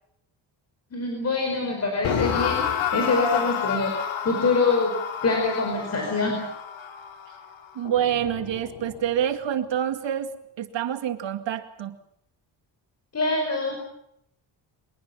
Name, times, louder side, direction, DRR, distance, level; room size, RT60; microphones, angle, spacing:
voice 1, 0.9-4.9 5.2-6.5 13.1-13.8, left 3 dB, 35° left, 2 dB, 5.1 m, -25 dB
sound 1, 2.0-9.2, left 8 dB, 80° left, 2.9 m, -30 dB
voice 2, 7.8-12.0, right 9 dB, 70° right, 8 dB, 2.3 m, -27 dB
23.5 x 22.0 x 7.1 m, 0.75 s
wide cardioid pair, 175°, 46 cm